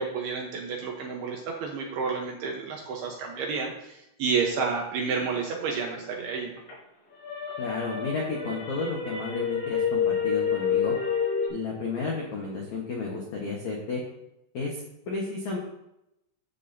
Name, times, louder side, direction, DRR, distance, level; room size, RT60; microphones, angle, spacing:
voice 1, 0.0-6.5, right 5 dB, 70° right, 0 dB, 2.6 m, -30 dB
sound 1, 5.2-6.7 7.1-11.5, left 7 dB, 60° left, 5.5 m, -29 dB
voice 2, 7.6-10.9 11.5-14.0 14.5-15.6, left 3 dB, 80° left, -2 dB, 1.6 m, -32 dB
13.0 x 9.0 x 2.8 m, 0.84 s
omnidirectional pair, 5.7 m